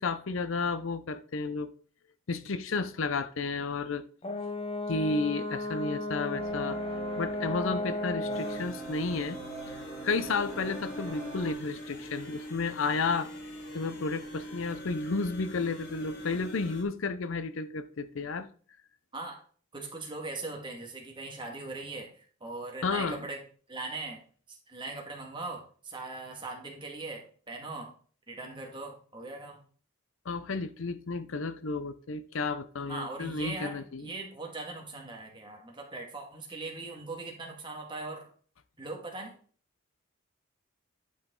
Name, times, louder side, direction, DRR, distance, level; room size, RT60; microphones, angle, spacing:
voice 1, 0.0-1.7 2.3-4.1 4.9-6.8 7.2-9.4 9.7-13.3 13.7-18.5 22.8-23.2 30.3-34.1, left 4 dB, 70° left, 0.6 m, -32 dB
Brass instrument, 4.2-8.7, left 1 dB, 25° left, 0.6 m, -34 dB
sound 1, 6.3-11.5, right 3 dB, ahead, 3.6 m, -43 dB
sound 2, 8.3-16.8, equal, 55° left, 2.5 m, -43 dB
voice 2, 19.7-23.4 23.7-24.2 24.5-27.9 28.3-29.6 32.9-38.3 38.8-39.3, right 3 dB, 25° right, 1.9 m, -40 dB
11.0 x 5.1 x 3.8 m
head